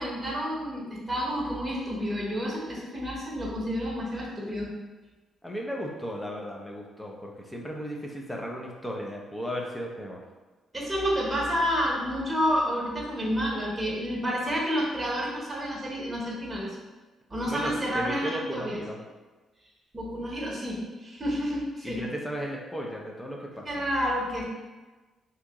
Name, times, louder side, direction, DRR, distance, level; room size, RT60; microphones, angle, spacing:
voice 1, 0.0-4.7 10.7-16.8 17.3-18.8 19.9-22.0 23.6-24.4, equal, 15° right, -5 dB, 0.9 m, -29 dB
voice 2, 5.4-10.2 17.5-19.0 21.8-23.7, equal, 10° left, -1 dB, 0.5 m, -35 dB
2.8 x 2.6 x 3.5 m, 1.2 s
cardioid pair, 100°, 0 cm